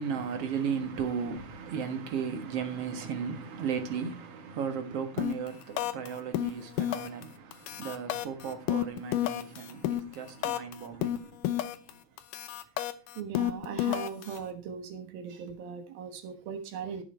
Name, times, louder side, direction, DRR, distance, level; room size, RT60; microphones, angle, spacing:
voice 1, 0.0-11.4, right 6 dB, 55° right, 2.1 m, -35 dB
sound 1, 5.2-5.5 5.8-6.1 6.3-7.2 7.5-10.7 11.0-11.9 12.2-14.4, left 13 dB, 75° left, 2.3 m, -30 dB
voice 2, 13.2-17.0, right 7 dB, 90° right, 3.3 m, -39 dB
13.0 x 7.2 x 4.5 m
omnidirectional pair, 4.0 m